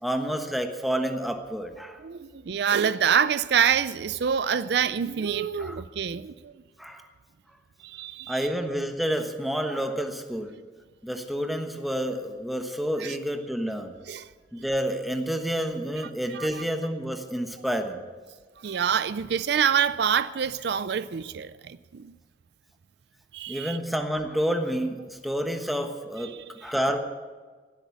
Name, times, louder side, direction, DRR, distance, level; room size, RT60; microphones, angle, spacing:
voice 1, 0.0-2.0 5.6-5.8 6.8-7.1 8.3-10.6 11.0-14.0 14.5-18.0 23.5-27.0, equal, ahead, 1.2 m, -29 dB
voice 2, 2.0-6.5 7.8-8.4 13.0-13.2 14.1-14.3 16.3-16.6 18.6-22.1 23.3-23.8 26.2-26.4, right 7 dB, 65° right, 0.4 m, -26 dB
17.5 x 8.1 x 8.3 m
head